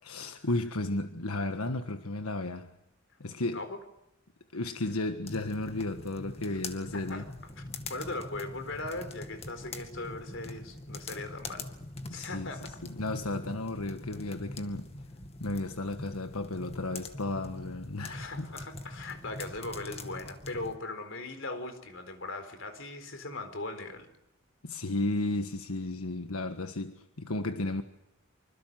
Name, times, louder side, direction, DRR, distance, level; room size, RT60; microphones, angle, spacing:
voice 1, 0.0-2.8 3.2-3.7 4.5-7.2 12.1-14.9 15.4-18.5 24.6-27.8, left 2 dB, 85° left, 1.5 m, -34 dB
sound 1, 5.3-20.8, left 2 dB, 25° left, 2.2 m, -43 dB
voice 2, 6.9-7.2 7.6-11.7 12.1-12.7 18.1-24.1, left 2 dB, 60° left, 4.2 m, -39 dB
26.0 x 25.5 x 7.7 m
head